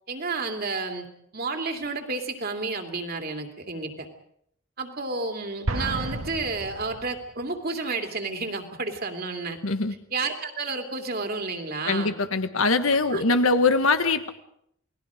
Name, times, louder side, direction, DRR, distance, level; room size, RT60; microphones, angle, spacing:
voice 1, 0.1-1.1 1.3-4.1 4.8-9.6 10.1-12.1 13.1-13.2, right 3 dB, 45° right, 4 dB, 2.8 m, -31 dB
Explosion, 5.7-7.5, right 1 dB, 80° right, 2.2 m, -32 dB
voice 2, 9.6-9.9 11.8-14.3, left 3 dB, 85° left, 9 dB, 1.6 m, -22 dB
29.0 x 20.0 x 5.1 m, 0.70 s
head